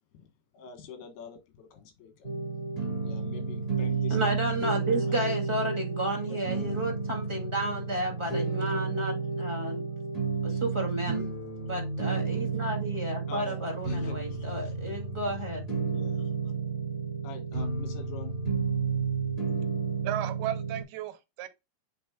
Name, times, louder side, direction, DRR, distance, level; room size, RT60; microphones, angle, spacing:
voice 1, 0.5-2.5 3.0-4.4 5.0-5.4 6.3-6.4 10.5-10.6 13.3-14.7 15.9-16.3 17.2-18.3, left 6 dB, 75° left, 3.4 m, -46 dB
sound 1, 2.2-20.8, right 4 dB, 15° left, 3.8 m, -31 dB
voice 2, 4.1-9.8 10.4-11.3 11.6-15.6, right 1 dB, 20° right, 0.7 m, -32 dB
voice 3, 20.0-21.5, right 12 dB, 80° right, 2.7 m, -34 dB
8.6 x 5.0 x 2.3 m
omnidirectional pair, 4.6 m